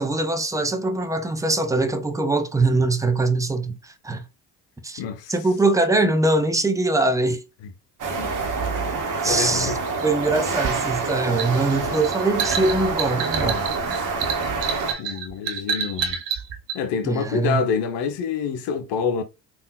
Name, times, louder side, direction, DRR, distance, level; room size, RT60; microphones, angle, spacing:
voice 1, 0.0-4.2 4.8-5.0 5.3-7.4 9.2-9.8 10.0-13.7 17.0-17.6, right 2 dB, 5° right, 0.6 m, -22 dB
voice 2, 5.0-5.3 8.1-8.3 8.9-9.0 9.2-9.8 15.0-16.2 16.7-19.2, left 6 dB, 65° left, 0.8 m, -26 dB
sound 1, 8.0-14.9, right 4 dB, 40° right, 1.1 m, -26 dB
sound 2, 10.6-16.8, right 7 dB, 60° right, 0.7 m, -29 dB
3.6 x 2.5 x 2.2 m
hypercardioid pair, 60°, 48 cm